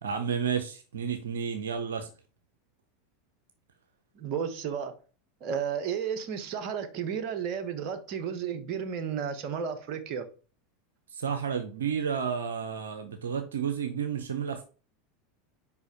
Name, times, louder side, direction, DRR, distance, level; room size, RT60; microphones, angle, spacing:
voice 1, 0.0-2.1 11.1-14.6, right 7 dB, 80° right, 0.7 m, -31 dB
voice 2, 4.2-4.9 5.4-10.3, right 7 dB, 50° right, 1.2 m, -33 dB
5.2 x 4.8 x 4.9 m
hypercardioid pair, 85°, 0 cm